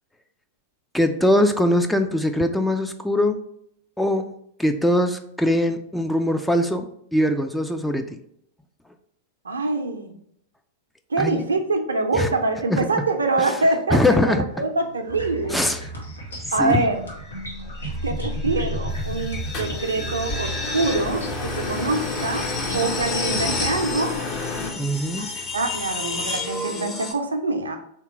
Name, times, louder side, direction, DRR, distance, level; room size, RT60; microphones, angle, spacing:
voice 1, 0.9-3.4 4.0-4.3 4.6-8.2 11.2-11.4 12.2-12.3 12.7-12.9 13.4-13.5 13.9-14.5 15.5-15.8 16.6-16.8 24.8-25.3, left 1 dB, 5° left, 6 dB, 0.4 m, -21 dB
voice 2, 9.4-10.1 11.1-14.0 14.3-15.6 16.5-17.0 18.0-22.5 22.7-24.2 25.1-27.8, right 3 dB, 80° right, 5 dB, 0.6 m, -25 dB
sound 1, 14.5-14.9 17.1-27.1, left 3 dB, 25° left, 0.8 m, -32 dB
sound 2, 15.1-23.8, right 2 dB, 85° left, 1.0 m, -34 dB
sound 3, 18.9-24.7, left 3 dB, 45° left, 1.0 m, -31 dB
3.5 x 2.9 x 4.6 m, 0.72 s
figure-of-eight pair, 95°, 0 cm